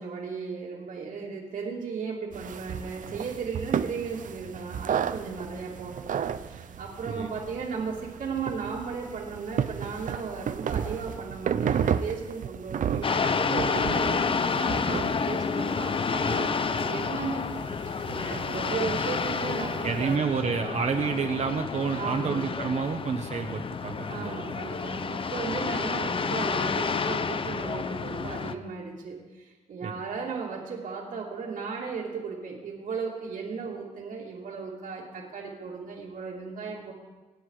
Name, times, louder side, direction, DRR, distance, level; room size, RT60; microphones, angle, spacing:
voice 1, 0.0-17.5 18.2-20.2 21.9-22.4 24.0-36.9, right 5 dB, 90° right, -5 dB, 2.8 m, -35 dB
sound 1, 2.3-20.1, right 8 dB, 70° right, 0.7 m, -34 dB
sound 2, 13.0-28.5, left 5 dB, 40° left, 0.7 m, -29 dB
voice 2, 19.8-24.5 29.8-29.9, right 6 dB, 55° right, 4 dB, 1.1 m, -29 dB
25.0 x 9.6 x 4.9 m, 1.2 s
cardioid pair, 105°, 14 cm